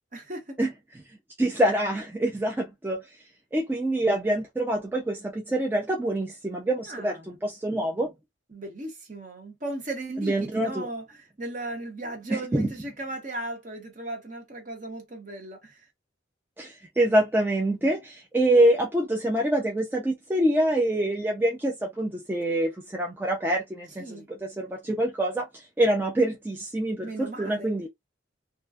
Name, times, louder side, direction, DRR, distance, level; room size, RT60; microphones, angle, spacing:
voice 1, 0.1-0.6 6.9-7.3 8.5-15.8 24.0-24.3 27.0-27.7, right 2 dB, 40° right, 0.9 m, -36 dB
voice 2, 1.4-3.0 3.5-8.1 10.2-10.9 12.3-12.7 16.6-27.9, right 1 dB, 10° right, 0.4 m, -25 dB
2.4 x 2.2 x 2.3 m
head